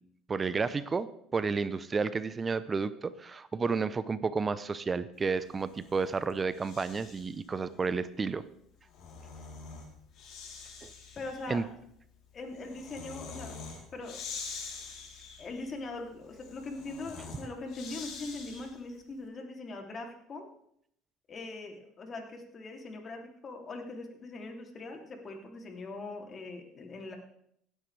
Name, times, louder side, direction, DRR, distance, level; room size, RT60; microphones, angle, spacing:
voice 1, 0.3-8.4 10.8-10.9 11.5-11.6, right 4 dB, 30° right, 15 dB, 0.7 m, -31 dB
Breathing, 5.4-7.4 8.7-18.9, left 5 dB, 60° left, 3.6 m, -46 dB
voice 2, 11.2-11.7 12.3-13.6 13.9-14.2 15.4-20.4 21.3-27.2, left 3 dB, 40° left, 2 dB, 2.9 m, -41 dB
17.0 x 9.9 x 3.4 m, 0.71 s
hypercardioid pair, 75°, 0 cm